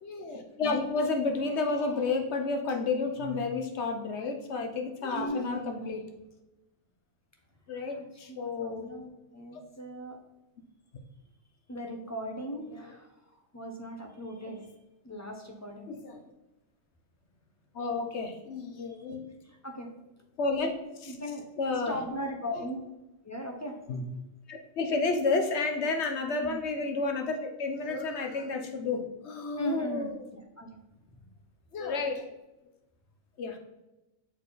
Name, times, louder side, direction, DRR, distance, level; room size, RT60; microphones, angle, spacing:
voice 1, 0.0-6.0 7.7-8.9 12.6-12.9 15.9-16.2 17.7-19.3 20.4-20.7 21.0-21.2 21.6-22.0 22.5-22.7 23.9-24.1 24.5-30.2 31.7-32.3 33.4-33.6, left 3 dB, 60° left, 4 dB, 1.1 m, -31 dB
voice 2, 5.1-6.0 7.9-10.2 11.7-13.1 13.5-14.7 15.0-15.9 19.6-19.9 21.1-21.4 21.9-22.8 23.2-23.8 26.4-26.6 29.6-30.1 30.6-30.7, equal, 15° left, 2 dB, 0.7 m, -37 dB
7.3 x 4.4 x 4.0 m, 0.98 s
omnidirectional pair, 1.4 m